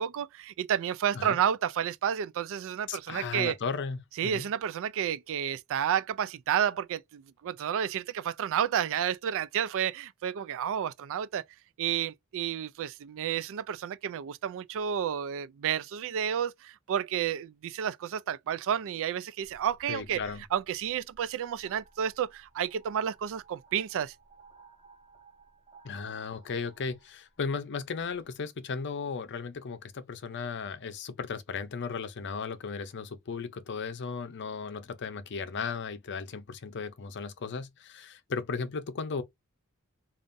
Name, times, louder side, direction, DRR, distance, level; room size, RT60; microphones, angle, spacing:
voice 1, 0.0-3.5 4.2-11.4 11.8-20.2 20.5-24.1, right 9 dB, 60° right, 0.3 m, -31 dB
voice 2, 2.9-4.4 19.9-20.4 25.8-39.2, left 5 dB, 55° left, 0.6 m, -36 dB
sound 1, 19.4-28.3, right 3 dB, 25° right, 2.6 m, -59 dB
5.2 x 2.5 x 2.6 m
head